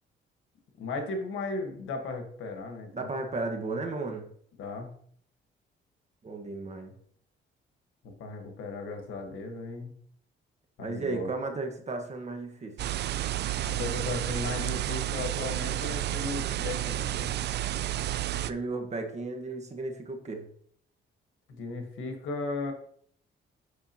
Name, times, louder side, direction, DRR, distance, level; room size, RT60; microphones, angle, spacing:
voice 1, 0.8-3.1 4.6-4.9 8.0-9.9 10.8-11.3 13.6-17.3 21.5-22.7, left 3 dB, 80° left, 4 dB, 1.5 m, -36 dB
voice 2, 2.9-4.3 6.2-6.9 10.8-12.8 18.4-20.5, right 3 dB, 35° right, 4 dB, 1.4 m, -34 dB
sound 1, 12.8-18.5, right 13 dB, 60° right, 0.4 m, -31 dB
8.4 x 5.9 x 2.9 m, 0.63 s
cardioid pair, 90°, 20 cm